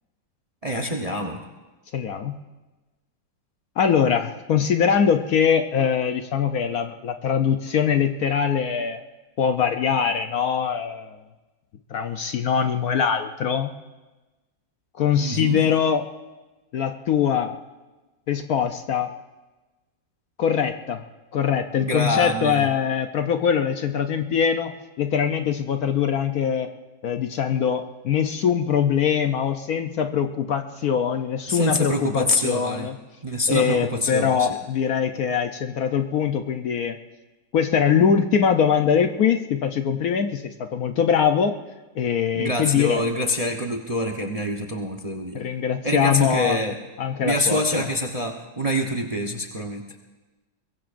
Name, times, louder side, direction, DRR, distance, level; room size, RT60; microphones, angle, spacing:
voice 1, 0.6-1.4 15.2-15.6 21.8-22.7 31.5-32.9 33.2-34.5 42.3-45.5 45.8-46.8 47.2-49.8, left 1 dB, 25° right, 3 dB, 0.8 m, -25 dB
voice 2, 1.9-2.4 3.8-9.0 9.4-11.2 11.9-13.8 15.0-16.0 16.7-17.5 18.3-19.1 20.4-21.0 21.3-24.7 25.0-26.7 27.0-33.0 33.5-37.0 37.5-41.6 42.0-43.0 45.3-46.6 47.0-47.9, left 7 dB, 65° left, 6 dB, 1.1 m, -22 dB
22.5 x 22.5 x 2.6 m, 1.2 s
omnidirectional pair, 1.9 m